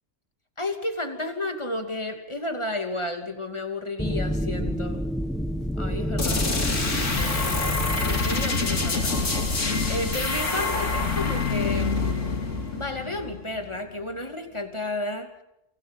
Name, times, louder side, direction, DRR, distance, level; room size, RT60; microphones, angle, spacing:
voice 1, 0.6-5.0 5.8-6.5 6.9-9.3 9.9-12.1 12.7-15.3, left 2 dB, 20° left, 6 dB, 2.8 m, -32 dB
sound 1, 4.0-11.8, equal, ahead, 1.3 m, -31 dB
sound 2, 6.2-13.8, left 3 dB, 75° left, 3.2 m, -26 dB
29.0 x 25.0 x 5.5 m, 0.86 s
omnidirectional pair, 1.3 m